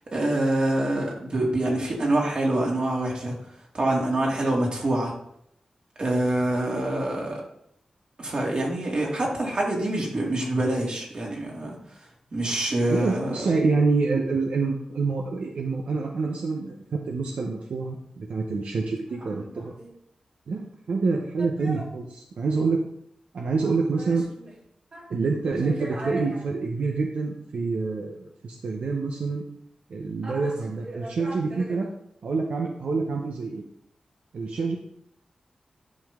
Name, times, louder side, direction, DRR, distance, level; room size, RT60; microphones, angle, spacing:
voice 1, 0.1-3.4 3.7-5.1 6.0-7.4 8.2-11.8 12.3-13.5 21.7-21.8 24.0-24.1 24.9-25.1 25.8-26.2 30.2-30.5 31.0-31.7, right 1 dB, 50° right, -2 dB, 2.6 m, -26 dB
voice 2, 12.9-16.8 17.1-19.7 20.5-22.8 23.3-24.2 25.1-29.4 29.9-31.9 32.2-33.6 34.3-34.8, right 4 dB, 90° right, 1 dB, 0.8 m, -27 dB
11.0 x 5.5 x 3.6 m, 0.73 s
wide cardioid pair, 90°, 2 cm